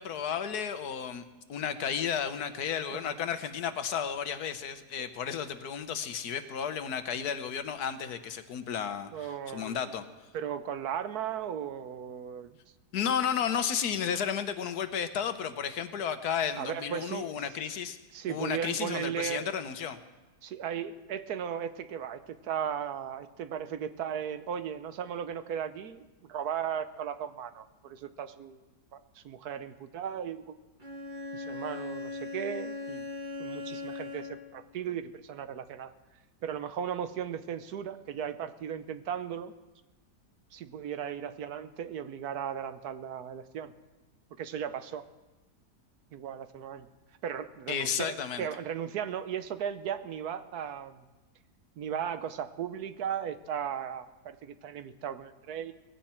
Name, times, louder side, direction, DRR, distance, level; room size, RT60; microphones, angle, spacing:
voice 1, 0.0-9.1 9.5-10.0 12.9-18.0 18.3-20.0 47.7-48.5, left 8 dB, 70° left, 10 dB, 1.4 m, -33 dB
voice 2, 9.1-9.9 10.3-12.6 16.6-17.4 18.1-19.5 20.4-26.0 26.3-30.6 31.3-33.1 33.4-35.9 36.4-39.5 40.5-43.7 44.4-45.1 46.1-46.9 47.2-51.0 51.8-55.7, right 8 dB, 75° right, 11 dB, 1.2 m, -36 dB
Bowed string instrument, 30.8-34.6, left 3 dB, 30° right, 2.3 m, -39 dB
19.5 x 16.0 x 4.4 m, 1.1 s
omnidirectional pair, 1.8 m